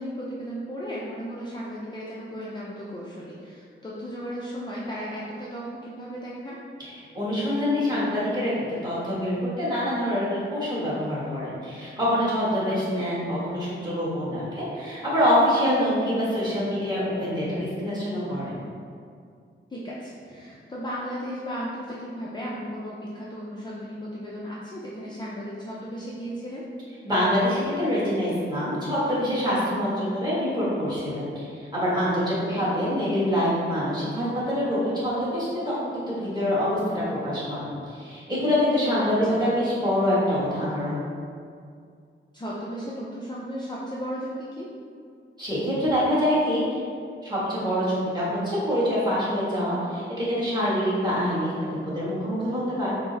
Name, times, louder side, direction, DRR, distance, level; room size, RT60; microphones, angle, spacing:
voice 1, 0.0-6.6 13.0-13.1 16.0-16.2 19.7-26.7 32.5-32.6 39.3-39.5 42.3-44.7, equal, 20° left, -7 dB, 0.4 m, -35 dB
voice 2, 6.8-8.5 8.8-18.6 27.0-41.0 45.4-46.8 47.2-52.9, equal, 20° right, -10 dB, 1.4 m, -25 dB
4.6 x 2.0 x 3.9 m, 2.3 s
wide cardioid pair, 135°, 21 cm